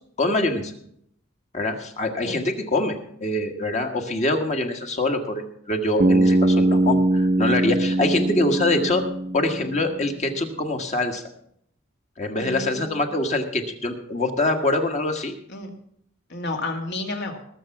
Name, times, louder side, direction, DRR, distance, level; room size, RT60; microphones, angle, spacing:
voice 1, 0.2-0.7 1.5-9.0 9.3-11.2 12.2-15.3, left 2 dB, 35° left, 4 dB, 1.6 m, -24 dB
Bass guitar, 6.0-10.0, right 1 dB, 40° right, 0.7 m, -21 dB
voice 2, 12.4-13.0 15.5-15.7 16.3-17.4, left 2 dB, 60° left, 4 dB, 2.2 m, -31 dB
20.0 x 6.8 x 5.9 m, 0.68 s
head